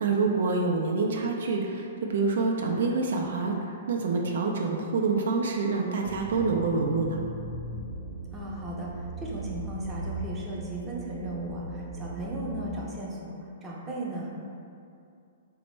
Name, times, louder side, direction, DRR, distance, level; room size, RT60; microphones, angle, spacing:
voice 1, 0.0-7.2, right 4 dB, 75° right, 0 dB, 0.3 m, -27 dB
sound 1, 6.0-12.6, right 2 dB, 50° left, 0.7 m, -38 dB
voice 2, 8.3-8.9 9.2-13.4 13.6-14.3, right 1 dB, 15° right, -4 dB, 0.5 m, -36 dB
3.2 x 2.0 x 3.0 m, 2.5 s
hypercardioid pair, 135°, 0 cm